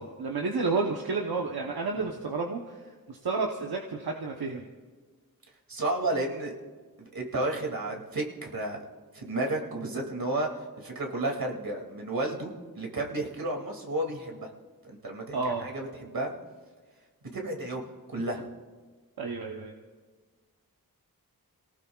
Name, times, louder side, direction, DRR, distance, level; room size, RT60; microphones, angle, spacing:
voice 1, 0.0-4.7 15.3-15.7 19.2-19.7, right 4 dB, 90° right, 1 dB, 1.0 m, -31 dB
voice 2, 5.7-6.5 7.0-8.8 9.1-10.5 10.8-14.5 14.8-16.3 17.3-17.8 18.1-18.5, right 2 dB, 70° right, 1 dB, 2.5 m, -32 dB
29.5 x 18.0 x 2.4 m, 1.4 s
cardioid pair, 45°, 37 cm